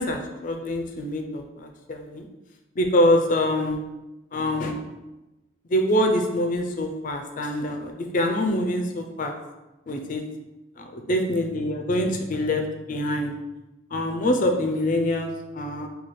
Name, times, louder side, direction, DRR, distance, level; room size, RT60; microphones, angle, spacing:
voice 1, 0.0-2.3 2.8-3.9 4.3-4.7 5.7-9.3 9.9-10.3 10.8-13.3 13.9-15.9, left 1 dB, 40° left, 4 dB, 0.4 m, -25 dB
4.1 x 2.3 x 3.1 m, 1.0 s
head